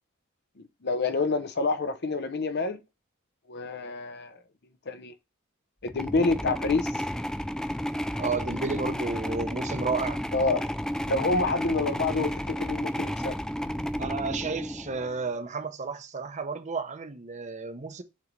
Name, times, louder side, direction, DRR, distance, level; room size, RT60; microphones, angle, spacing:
voice 1, 0.6-2.8 3.5-4.4 4.9-5.1 5.8-7.0 10.3-10.7 11.1-13.4, left 3 dB, 50° left, 0.7 m, -28 dB
sound 1, 5.9-15.2, equal, 5° left, 0.3 m, -32 dB
voice 2, 8.2-10.2 14.0-18.0, right 4 dB, 35° right, 0.8 m, -32 dB
7.4 x 4.0 x 3.3 m
head